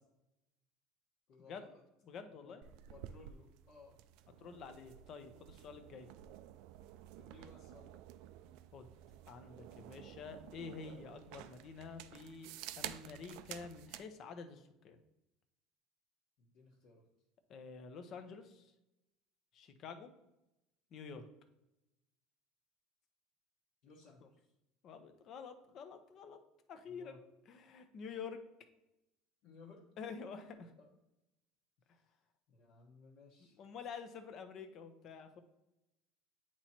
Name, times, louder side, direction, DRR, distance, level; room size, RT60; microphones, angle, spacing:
voice 1, 1.3-1.8 2.4-2.5 2.9-4.0 7.2-8.0 16.4-17.0 23.8-24.5 26.8-27.2 29.4-29.8 30.8-30.9 31.9-32.2 32.5-33.6, left 4 dB, 60° left, -6 dB, 1.3 m, -59 dB
voice 2, 2.0-2.6 4.4-6.1 8.7-8.9 9.3-15.0 17.5-18.7 19.5-20.1 20.9-21.3 24.2-24.3 24.8-26.4 26.7-28.4 30.0-30.7 33.6-35.4, left 5 dB, 45° left, 8 dB, 0.8 m, -49 dB
sound 1, 2.6-14.1, right 12 dB, 70° right, 0.3 m, -52 dB
8.6 x 3.0 x 4.3 m, 0.91 s
cardioid pair, 135°, 0 cm